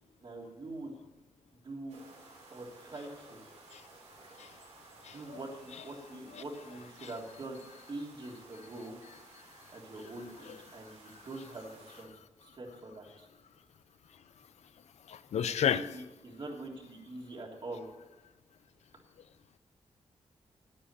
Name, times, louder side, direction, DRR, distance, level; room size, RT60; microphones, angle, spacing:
voice 1, 0.2-0.9 1.6-2.0 2.5-3.4 5.1-7.6 7.9-8.9 9.7-12.1 12.4-13.3 15.5-17.8, right 2 dB, 50° right, 3.3 m, -44 dB
sound 1, 1.9-12.0, right 3 dB, 85° right, 3.5 m, -56 dB
voice 2, 5.0-5.4 6.3-6.4 7.0-7.1 10.5-10.6 15.1-15.9, left 8 dB, 85° left, 0.6 m, -32 dB
10.0 x 9.6 x 6.8 m
wide cardioid pair, 100°, 11 cm